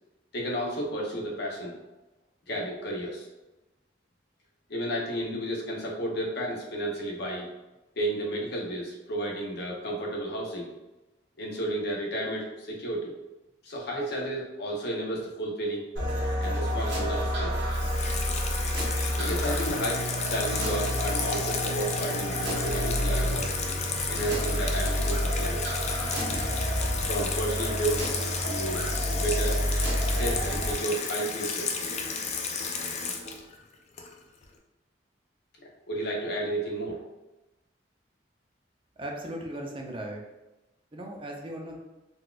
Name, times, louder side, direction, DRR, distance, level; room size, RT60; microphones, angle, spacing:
voice 1, 0.3-1.8 2.5-3.3 4.7-7.5 8.0-10.7 11.4-13.1 13.6-15.9 16.4-17.6 18.1-18.2 19.2-23.5 24.1-25.6 27.1-28.1 28.4-28.8 29.1-29.6 30.2-31.7 35.9-37.0, right 1 dB, 65° left, -2 dB, 0.8 m, -32 dB
sound 1, 16.0-30.7, equal, 80° right, 1.0 m, -29 dB
Water tap faucet / Sink (filling or washing), 17.7-34.4, left 5 dB, 40° left, 0.4 m, -33 dB
voice 2, 39.0-40.2 40.9-41.8, right 1 dB, 30° right, 1 dB, 0.5 m, -37 dB
3.9 x 2.3 x 2.4 m, 1.0 s
head